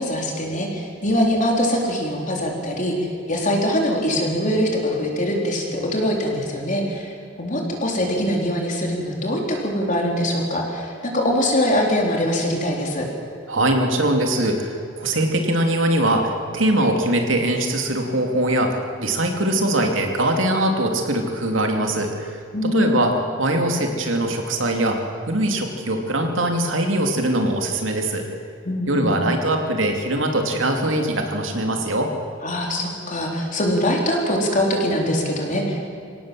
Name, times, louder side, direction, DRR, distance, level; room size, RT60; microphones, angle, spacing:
voice 1, 0.0-7.1 7.4-13.1 22.5-23.0 28.6-29.2 32.4-35.9, equal, 40° left, 0 dB, 3.8 m, -23 dB
voice 2, 13.5-23.1 23.4-25.0 25.3-28.2 28.9-32.1, right 1 dB, 85° right, 3 dB, 2.8 m, -22 dB
25.0 x 17.0 x 7.7 m, 2.5 s
head